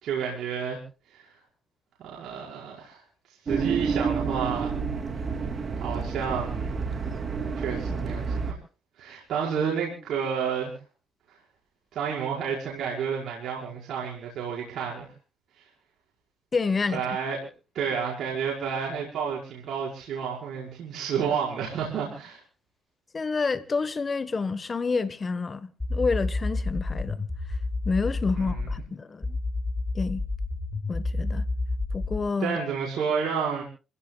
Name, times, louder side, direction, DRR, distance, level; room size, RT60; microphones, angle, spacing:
voice 1, 0.0-0.8 1.1-1.3 2.0-3.0 3.4-4.7 5.8-6.7 7.6-8.6 9.0-10.7 11.9-15.1 15.6-15.7 16.9-17.5 17.7-22.4 28.4-28.7 32.4-33.6, right 6 dB, 75° right, 5.2 m, -30 dB
sound 1, 3.5-8.5, right 5 dB, 45° right, 2.9 m, -29 dB
voice 2, 16.5-17.0 23.1-27.2 27.8-29.4 29.9-30.2 30.9-31.4 31.9-32.6, left 4 dB, 35° left, 1.2 m, -28 dB
sound 2, 25.8-28.8 29.2-32.2, left 2 dB, 15° left, 6.4 m, -29 dB
29.0 x 16.5 x 2.3 m
cardioid pair, 90°, 0 cm